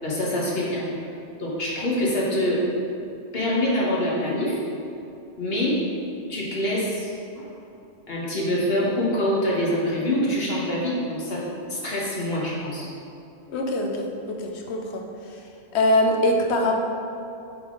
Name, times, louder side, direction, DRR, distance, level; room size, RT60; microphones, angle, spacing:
voice 1, 0.0-0.8 1.4-2.6 3.3-4.6 5.4-5.8 6.3-7.5 8.1-12.9, left 1 dB, 65° left, -5 dB, 1.5 m, -25 dB
voice 2, 13.5-15.0 15.7-16.7, left 1 dB, 80° left, 2 dB, 1.0 m, -23 dB
8.0 x 3.9 x 3.8 m, 2.7 s
omnidirectional pair, 1.1 m